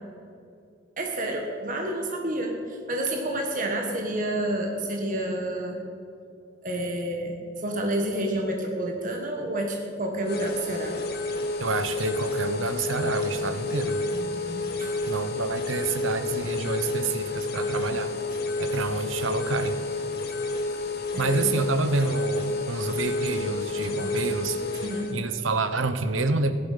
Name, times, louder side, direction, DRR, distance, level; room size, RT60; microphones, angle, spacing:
voice 1, 1.0-5.8 6.6-10.9 14.1-14.9 21.1-21.5 24.8-25.1, right 1 dB, 45° right, 2 dB, 1.4 m, -29 dB
sound 1, 10.2-25.2, left 2 dB, 55° left, 1.4 m, -30 dB
voice 2, 11.6-14.0 15.1-18.1 18.6-19.8 21.2-26.5, right 3 dB, 90° right, 10 dB, 1.0 m, -28 dB
15.5 x 11.0 x 5.7 m, 2.5 s
head